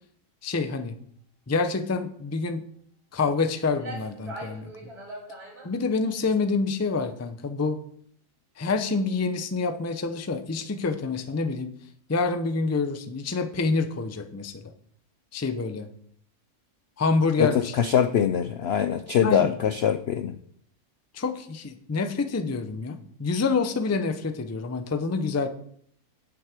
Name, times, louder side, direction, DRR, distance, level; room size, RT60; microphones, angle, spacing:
voice 1, 0.4-0.9 1.5-2.6 3.1-4.9 5.6-7.8 8.6-11.7 12.1-14.6 15.3-15.9 17.0-17.7 19.2-19.5 21.1-25.5, left 4 dB, 25° left, 8 dB, 0.3 m, -27 dB
sound 1, 3.4-3.5 3.8-5.7, right 1 dB, 75° right, 4.6 m, -40 dB
voice 2, 17.4-20.4, left 8 dB, 70° left, 11 dB, 0.6 m, -23 dB
9.6 x 7.8 x 5.0 m, 0.62 s
omnidirectional pair, 1.6 m